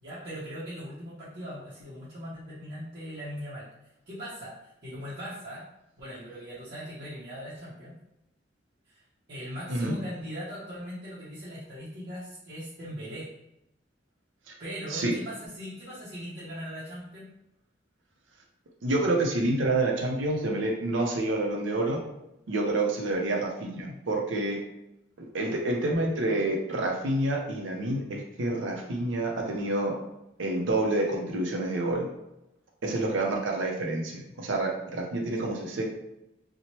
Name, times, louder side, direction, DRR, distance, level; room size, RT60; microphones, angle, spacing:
voice 1, 0.0-3.7 4.1-5.6 6.0-7.9 8.9-9.0 9.3-13.3 14.6-17.3, equal, 50° right, -11 dB, 0.7 m, -40 dB
voice 2, 18.8-22.0 22.5-24.6 25.3-29.9 30.4-32.1 32.8-35.8, right 2 dB, 90° right, 0 dB, 0.5 m, -28 dB
2.8 x 2.1 x 3.0 m, 0.89 s
head